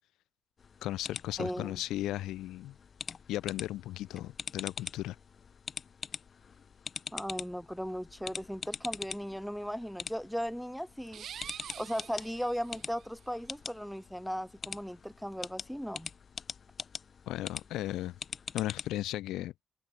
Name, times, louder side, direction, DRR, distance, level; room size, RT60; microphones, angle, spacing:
sound 1, 0.6-19.0, left 6 dB, 45° left, 1.9 m, -44 dB
voice 1, 0.8-2.8 3.3-5.2 17.3-18.2 18.5-19.5, left 15 dB, 90° left, 0.6 m, -36 dB
voice 2, 1.4-1.8 7.1-11.3 11.8-16.1, equal, ahead, 0.5 m, -37 dB
sound 2, 11.1-13.1, right 9 dB, 65° right, 0.6 m, -46 dB
cardioid pair, 90°, 0 cm